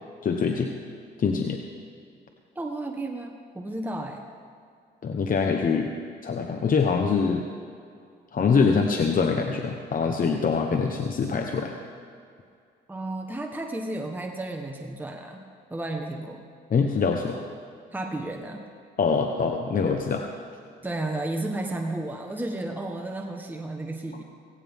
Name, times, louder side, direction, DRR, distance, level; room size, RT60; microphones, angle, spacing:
voice 1, 0.2-0.7 1.2-1.6 5.0-5.9 6.2-7.4 8.3-11.7 16.7-17.4 19.0-20.2, left 5 dB, 45° left, 3 dB, 1.0 m, -24 dB
voice 2, 2.5-4.3 12.9-15.4 15.7-16.4 17.9-18.6 20.8-24.2, right 2 dB, 10° right, 2 dB, 1.2 m, -33 dB
17.0 x 17.0 x 3.6 m, 2.3 s
cardioid pair, 90°, 20 cm